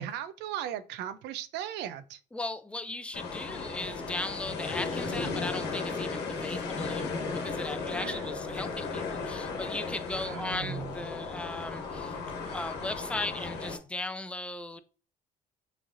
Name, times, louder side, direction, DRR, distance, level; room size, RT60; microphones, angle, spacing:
voice 1, 0.0-2.2 7.9-8.3 10.1-10.9, right 10 dB, 85° right, 0.5 m, -37 dB
voice 2, 2.3-12.2 12.5-14.8, left 2 dB, 5° left, 0.5 m, -37 dB
sound 1, 3.1-13.8, left 4 dB, 80° left, 1.2 m, -35 dB
6.1 x 3.3 x 2.6 m
cardioid pair, 110°, 17 cm